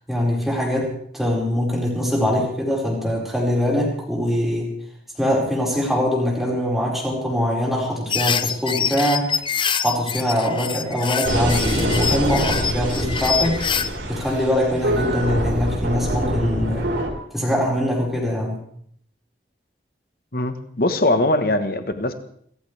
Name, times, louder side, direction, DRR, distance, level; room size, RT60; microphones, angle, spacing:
voice 1, 0.1-4.7 5.2-9.3 9.8-13.6 14.1-16.9 17.3-18.6, equal, ahead, -4 dB, 5.2 m, -23 dB
sound 1, 8.1-13.9, left 7 dB, 25° left, 0.6 m, -25 dB
sound 2, 11.2-17.1, right 1 dB, 85° right, 4.7 m, -25 dB
voice 2, 20.3-22.1, left 1 dB, 50° left, 9 dB, 1.3 m, -21 dB
27.0 x 15.0 x 3.5 m, 0.65 s
head